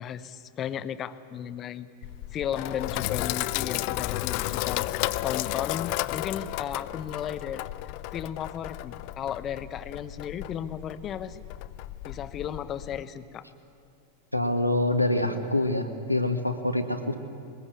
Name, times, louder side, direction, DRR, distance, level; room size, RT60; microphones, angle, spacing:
voice 1, 0.0-1.9 2.3-7.7 8.1-11.4 12.0-13.4, left 9 dB, 30° left, 14 dB, 1.0 m, -35 dB
Sink (filling or washing), 2.0-13.0, left 18 dB, 45° left, 0.5 m, -33 dB
voice 2, 14.3-17.1, left 1 dB, 90° left, 6 dB, 1.7 m, -26 dB
21.5 x 20.5 x 8.7 m, 2.6 s
figure-of-eight pair, 90°, 0 cm